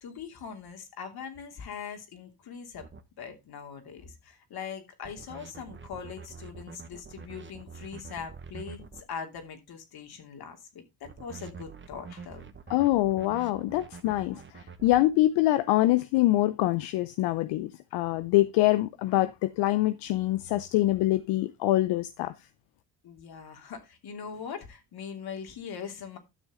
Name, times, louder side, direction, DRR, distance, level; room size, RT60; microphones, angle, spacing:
voice 1, 0.0-2.9 3.2-12.5 14.3-14.4 17.9-18.0 23.0-26.2, left 7 dB, 65° left, 3.0 m, -41 dB
sound 1, 2.8-3.0 5.0-9.0 11.0-15.0, right 5 dB, 30° right, 1.4 m, -45 dB
voice 2, 12.7-22.3, left 16 dB, 85° left, 0.8 m, -25 dB
12.0 x 6.3 x 3.7 m
supercardioid pair, 70°, 40 cm